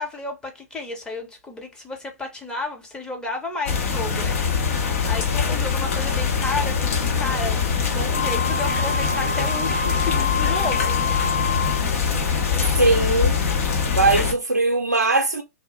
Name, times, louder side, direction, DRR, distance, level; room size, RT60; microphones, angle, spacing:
voice 1, 0.0-11.0, left 3 dB, 10° left, 0.8 m, -32 dB
sound 1, 3.7-14.3, left 6 dB, 55° left, 0.8 m, -23 dB
Wind instrument woodwind instrument, 8.1-11.9, left 5 dB, 35° right, 0.5 m, -27 dB
voice 2, 12.8-13.4 13.8-15.4, right 3 dB, 85° right, 0.5 m, -20 dB
2.5 x 2.1 x 2.9 m
figure-of-eight pair, 110°, 9 cm